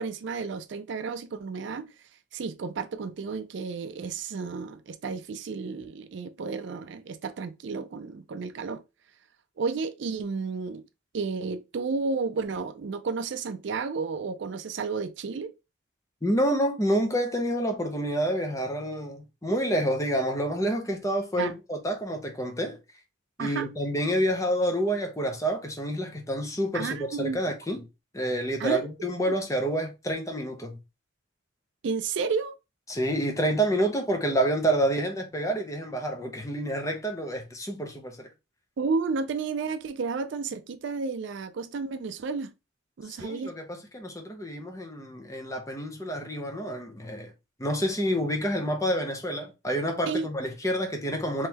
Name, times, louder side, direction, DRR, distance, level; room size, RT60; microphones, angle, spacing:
voice 1, 0.0-1.9 2.3-8.8 9.6-10.8 11.1-15.5 21.4-21.5 23.4-23.7 26.7-27.4 28.6-29.3 31.8-32.5 38.8-42.5 43.0-43.5 50.1-50.3, right 4 dB, 60° right, 0.4 m, -32 dB
voice 2, 16.2-22.8 23.4-27.9 28.1-30.8 32.9-38.3 43.0-47.3 47.6-51.5, right 1 dB, 15° left, 0.6 m, -28 dB
3.7 x 3.1 x 2.8 m
head